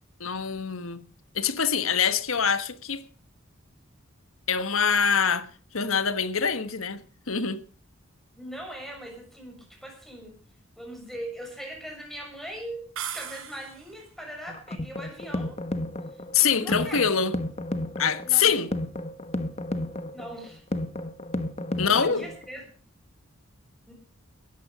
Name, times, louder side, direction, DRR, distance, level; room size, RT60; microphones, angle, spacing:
voice 1, 0.2-1.0 1.3-3.0 4.5-5.5 5.7-7.0 7.3-7.6 16.3-17.3 18.0-18.7 21.8-22.2, left 6 dB, 80° left, 1.4 m, -24 dB
voice 2, 8.4-10.4 10.8-12.8 13.1-15.6 16.1-17.2 18.2-18.6 20.1-20.6 21.8-22.6 23.9-24.0, right 1 dB, ahead, 6.7 m, -40 dB
sound 1, 13.0-14.0, right 9 dB, 80° right, 2.9 m, -37 dB
sound 2, 14.5-22.5, left 1 dB, 30° left, 1.1 m, -33 dB
18.5 x 14.0 x 5.0 m
head